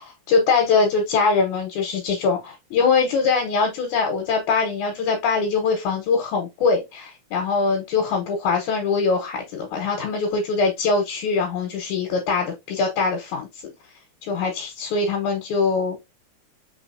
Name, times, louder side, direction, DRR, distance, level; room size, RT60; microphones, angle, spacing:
voice 1, 0.3-13.5 14.3-16.0, left 4 dB, 85° left, 2.3 m, -22 dB
4.9 x 3.4 x 2.5 m
omnidirectional pair, 3.3 m